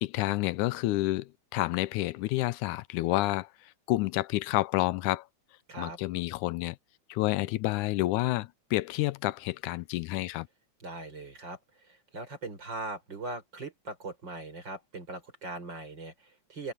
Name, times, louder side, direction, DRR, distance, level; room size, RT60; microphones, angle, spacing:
voice 1, 0.0-3.5 3.9-5.3 5.8-6.8 7.1-10.5, left 18 dB, 85° left, 2.1 m, -29 dB
voice 2, 10.8-11.6 11.9-16.7, right 2 dB, 35° right, 5.8 m, -40 dB
omnidirectional pair, 3.4 m